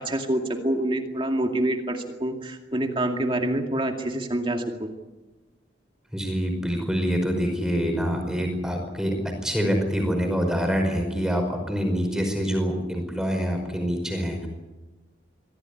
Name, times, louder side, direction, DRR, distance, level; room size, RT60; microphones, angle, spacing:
voice 1, 0.0-4.9, right 1 dB, 25° right, 3 dB, 2.3 m, -26 dB
voice 2, 6.1-14.5, equal, 5° right, 4 dB, 5.2 m, -26 dB
24.5 x 16.0 x 9.9 m, 1.1 s
head